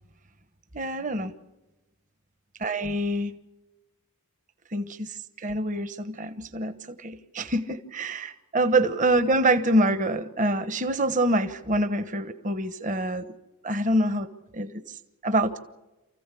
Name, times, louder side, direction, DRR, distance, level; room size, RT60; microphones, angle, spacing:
voice 1, 0.7-1.3 2.6-3.4 4.7-6.7 7.0-13.3 13.6-14.3 14.5-14.8 15.2-15.6, right 1 dB, 35° right, 11 dB, 1.2 m, -25 dB
28.5 x 15.5 x 8.4 m, 1.1 s
head